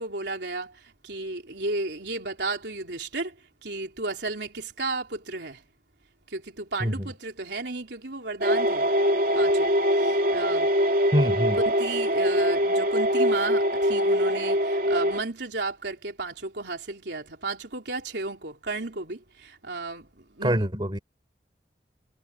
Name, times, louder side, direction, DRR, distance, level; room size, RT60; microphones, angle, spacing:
voice 1, 0.0-5.6 6.3-8.9 9.3-10.7 11.5-20.7, right 3 dB, 80° right, 3.6 m, -33 dB
sound 1, 8.4-15.2, equal, 55° right, 3.2 m, -23 dB
voice 2, 11.1-11.6 20.4-21.0, equal, 25° right, 3.9 m, -24 dB
head